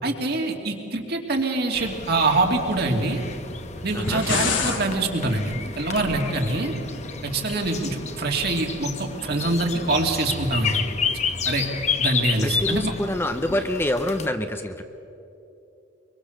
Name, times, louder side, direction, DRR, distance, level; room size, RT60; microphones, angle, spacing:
voice 1, 0.0-3.2 3.8-6.7 7.2-10.8 11.5-11.7 12.0-12.9, right 2 dB, 55° right, 2 dB, 2.6 m, -24 dB
sound 1, 1.7-14.3, left 5 dB, 35° left, 1.2 m, -31 dB
sound 2, 3.9-4.8, left 4 dB, 85° left, 2.4 m, -25 dB
voice 2, 3.9-4.2 12.4-14.8, left 1 dB, 10° left, 7 dB, 0.8 m, -26 dB
24.0 x 23.5 x 6.6 m, 2.9 s
head